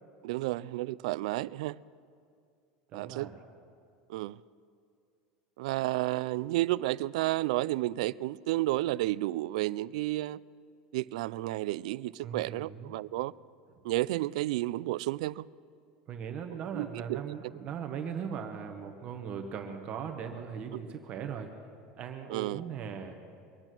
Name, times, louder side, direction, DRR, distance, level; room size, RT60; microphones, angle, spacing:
voice 1, 0.2-1.8 2.9-3.3 4.1-4.4 5.6-10.4 10.9-13.3 13.8-15.5 16.7-17.3 22.3-22.6, right 17 dB, 80° right, 0.3 m, -31 dB
voice 2, 2.9-3.4 12.2-12.9 16.1-21.5 22.0-23.2, right 7 dB, 30° right, 1.1 m, -39 dB
24.0 x 8.9 x 6.1 m
supercardioid pair, 165°, 4 cm